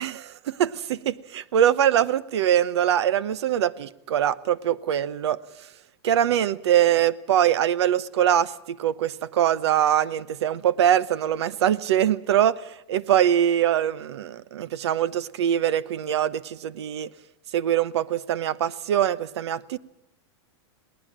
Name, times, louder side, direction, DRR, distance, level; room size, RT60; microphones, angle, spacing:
voice 1, 0.0-5.4 6.0-17.1 17.5-19.8, right 10 dB, 80° right, 0.9 m, -23 dB
21.5 x 18.5 x 7.4 m
supercardioid pair, 165°, 14 cm